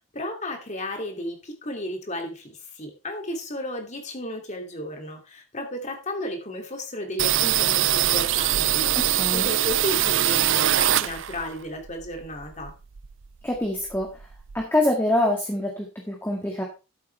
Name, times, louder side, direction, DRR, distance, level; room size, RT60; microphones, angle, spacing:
voice 1, 0.1-12.7, left 1 dB, 35° left, 3 dB, 2.8 m, -34 dB
sound 1, 7.2-11.5 11.9-13.2 13.5-13.6 13.9-14.6, right 12 dB, 60° right, 0.5 m, -23 dB
voice 2, 9.0-9.5 13.4-14.1 14.5-16.6, left 1 dB, 10° left, 0 dB, 1.9 m, -25 dB
12.5 x 8.3 x 3.4 m, 0.29 s
head